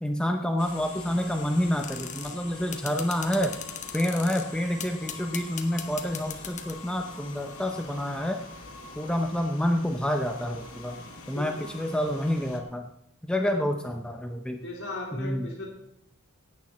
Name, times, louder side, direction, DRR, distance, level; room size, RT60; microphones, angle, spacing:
voice 1, 0.0-3.6 3.9-8.4 9.0-12.9 13.3-14.7 15.1-15.5, equal, 5° left, 4 dB, 0.6 m, -28 dB
sound 1, 0.6-12.6, left 3 dB, 75° left, 2.1 m, -44 dB
sound 2, 1.8-2.4 2.7-4.4 4.8-6.8, left 8 dB, 35° left, 1.2 m, -38 dB
voice 2, 11.3-11.7 13.3-13.6 14.6-15.7, left 2 dB, 55° left, -8 dB, 3.4 m, -37 dB
17.0 x 9.0 x 4.2 m, 0.81 s
head